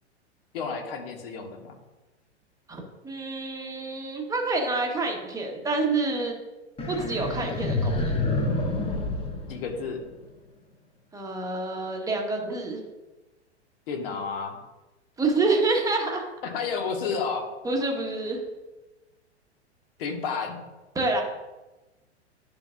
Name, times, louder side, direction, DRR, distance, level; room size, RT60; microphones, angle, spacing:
voice 1, 0.5-1.7 9.5-10.0 13.9-14.6 16.4-17.4 20.0-20.6, left 5 dB, 55° left, 3 dB, 1.6 m, -31 dB
voice 2, 2.7-6.4 6.9-8.1 11.1-12.8 15.2-16.2 17.6-18.4 20.9-21.2, right 3 dB, 10° right, 1 dB, 1.2 m, -27 dB
sound 1, 6.8-10.2, left 2 dB, 15° left, 1.1 m, -28 dB
10.5 x 5.8 x 2.5 m, 1.1 s
figure-of-eight pair, 105°, 35 cm